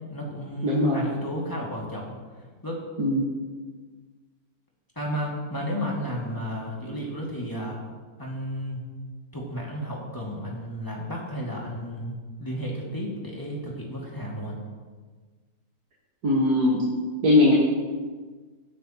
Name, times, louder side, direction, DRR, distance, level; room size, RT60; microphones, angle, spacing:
voice 1, 0.1-2.2 2.6-2.8 5.0-7.8 8.2-8.8 9.3-12.1 12.4-14.6, equal, 15° left, -3 dB, 2.2 m, -32 dB
voice 2, 0.6-1.1 3.0-3.3 16.2-16.8 17.2-17.5, left 2 dB, 80° right, -4 dB, 2.1 m, -20 dB
16.5 x 9.3 x 3.0 m, 1.4 s
omnidirectional pair, 1.6 m